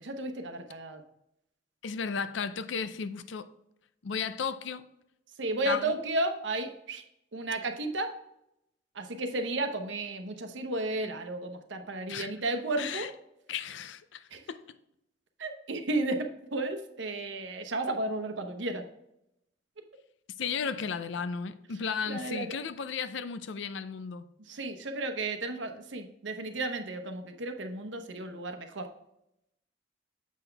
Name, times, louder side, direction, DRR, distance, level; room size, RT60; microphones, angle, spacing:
voice 1, 0.0-1.0 5.4-7.0 7.3-8.1 9.0-13.1 14.3-14.4 15.4-18.8 22.1-22.5 24.5-28.9, right 2 dB, 70° right, 0.9 m, -33 dB
voice 2, 1.8-3.5 4.0-4.8 5.7-6.0 12.1-12.3 12.8-13.1 13.5-14.6 20.4-24.3, left 6 dB, 70° left, 0.5 m, -34 dB
7.3 x 5.8 x 3.4 m
head